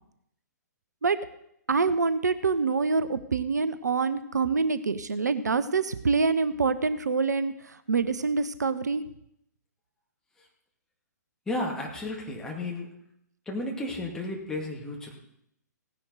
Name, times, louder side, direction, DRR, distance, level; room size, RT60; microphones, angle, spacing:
voice 1, 1.7-9.0, right 4 dB, 70° right, 13 dB, 0.7 m, -26 dB
voice 2, 11.5-12.9 13.5-15.1, left 2 dB, 5° left, -1 dB, 2.0 m, -33 dB
16.5 x 10.5 x 4.0 m, 0.75 s
figure-of-eight pair, 120°, 10 cm